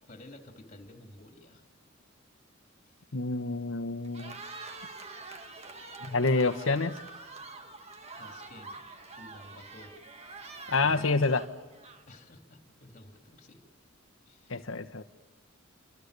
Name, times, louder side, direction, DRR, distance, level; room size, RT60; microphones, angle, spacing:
voice 1, 0.0-1.6 2.8-3.1 8.2-8.9 9.2-10.0 10.8-11.1 12.1-13.6 14.3-14.7, left 1 dB, 35° left, 3 dB, 3.3 m, -52 dB
voice 2, 3.1-4.4 6.0-7.0 10.7-11.4 14.5-15.0, left 3 dB, 70° left, 8 dB, 1.1 m, -28 dB
Cheering, 4.0-12.3, right 3 dB, 30° right, 1.5 m, -46 dB
28.0 x 26.5 x 6.8 m, 1.3 s
head